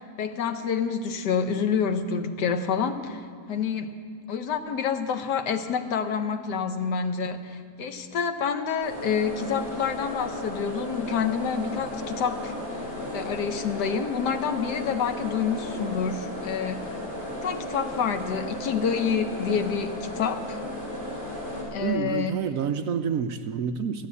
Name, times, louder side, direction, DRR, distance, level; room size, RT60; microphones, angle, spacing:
voice 1, 0.0-3.9 4.3-12.6 13.1-16.8 17.3-20.6 21.7-22.3, left 6 dB, 90° left, 7 dB, 1.5 m, -28 dB
sound 1, 8.8-21.6, left 1 dB, 35° left, 5.3 m, -35 dB
voice 2, 21.8-24.1, right 7 dB, 65° right, 9 dB, 0.9 m, -28 dB
14.0 x 12.5 x 8.3 m, 2.2 s
omnidirectional pair, 1.7 m